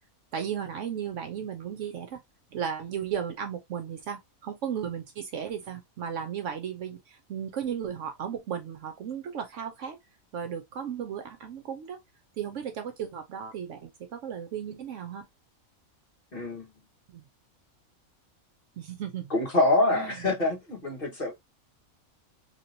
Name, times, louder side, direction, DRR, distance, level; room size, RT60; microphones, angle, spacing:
voice 1, 0.3-2.2 2.5-10.0 10.3-12.0 12.4-15.3 17.1-17.2 18.8-19.3 19.9-20.2, right 8 dB, 70° right, 0.9 m, -35 dB
voice 2, 16.3-16.7 19.3-21.3, left 2 dB, 40° left, 1.6 m, -25 dB
3.2 x 2.9 x 2.7 m
omnidirectional pair, 1.5 m